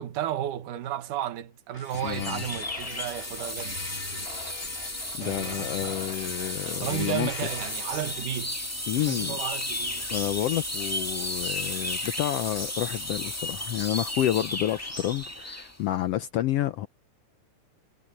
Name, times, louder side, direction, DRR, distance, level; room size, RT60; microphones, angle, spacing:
voice 1, 0.0-3.8 5.2-6.1 6.7-8.6 9.0-10.1, right 11 dB, 75° right, 2.9 m, -33 dB
sound 1, 1.7-8.2, left 3 dB, 35° left, 1.0 m, -40 dB
sound 2, 1.9-15.8, left 1 dB, 5° left, 1.3 m, -34 dB
voice 2, 2.0-2.4 5.2-7.3 8.9-9.4 10.1-16.9, left 13 dB, 85° left, 1.3 m, -29 dB
omnidirectional pair, 3.8 m